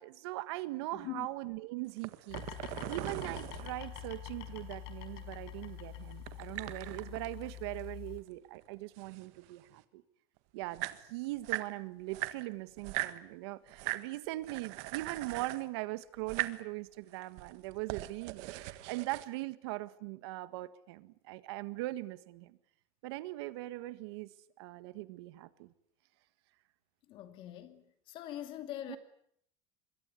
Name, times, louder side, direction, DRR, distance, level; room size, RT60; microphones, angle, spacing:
voice 1, 0.0-2.4 2.9-10.0 10.5-22.6 23.0-24.3 24.6-25.7 28.9-29.0, right 18 dB, 85° right, 1.6 m, -40 dB
voice 2, 0.9-1.3 27.1-29.0, left 12 dB, 40° left, 2.5 m, -43 dB
sound 1, 1.9-4.4 6.2-8.3 8.5-9.8 10.4-10.5 10.6-11.7 12.1-13.2 13.7-14.1 14.4-15.7 16.2-16.6 17.1-19.3, right 18 dB, 55° right, 1.5 m, -40 dB
sound 2, 2.3-8.2, left 10 dB, 85° left, 5.5 m, -46 dB
26.0 x 22.5 x 8.4 m
cardioid pair, 180°, 13 cm